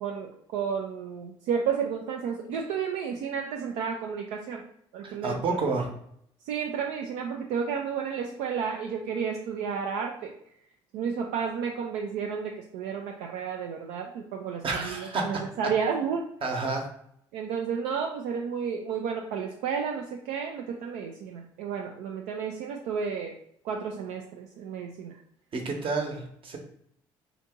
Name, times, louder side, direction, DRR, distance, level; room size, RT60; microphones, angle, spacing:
voice 1, 0.0-4.6 4.9-5.6 6.4-10.3 10.9-16.3 17.3-23.3 23.6-25.2, right 6 dB, 75° right, 1 dB, 0.4 m, -32 dB
voice 2, 5.0-5.9 14.6-15.3 16.4-16.9 25.5-26.6, right 3 dB, 45° right, 2 dB, 0.9 m, -30 dB
2.8 x 2.6 x 3.5 m, 0.70 s
supercardioid pair, 65°, 12 cm